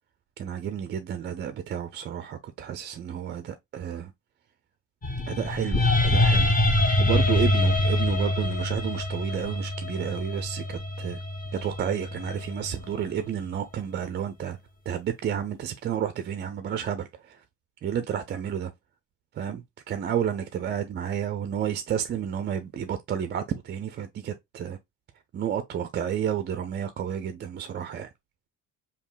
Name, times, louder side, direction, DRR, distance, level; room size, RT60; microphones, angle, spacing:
voice 1, 0.4-4.1 5.3-6.6 7.0-11.2 11.5-14.6 14.9-17.1 17.8-18.7 19.4-24.8 25.3-28.1, right 9 dB, 25° right, 0.3 m, -31 dB
sound 1, 5.0-13.2, left 1 dB, 20° left, 0.8 m, -25 dB
5.2 x 2.4 x 2.3 m
hypercardioid pair, 50°, 48 cm